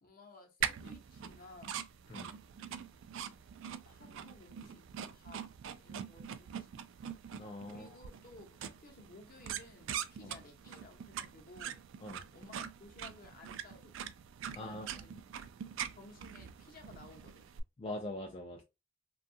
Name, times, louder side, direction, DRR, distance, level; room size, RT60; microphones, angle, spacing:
voice 1, 0.0-1.8 3.9-4.8 5.1-5.4 5.8-6.7 7.7-11.8 12.3-14.0 14.5-15.1 15.8-17.5, left 2 dB, 45° left, 0.7 m, -56 dB
sound 1, 0.6-17.6, right 8 dB, 65° right, 0.3 m, -43 dB
voice 2, 7.4-7.9 10.2-10.3 12.0-12.2 14.5-14.9 17.8-18.6, left 1 dB, 25° left, 0.3 m, -42 dB
2.7 x 2.3 x 2.6 m
head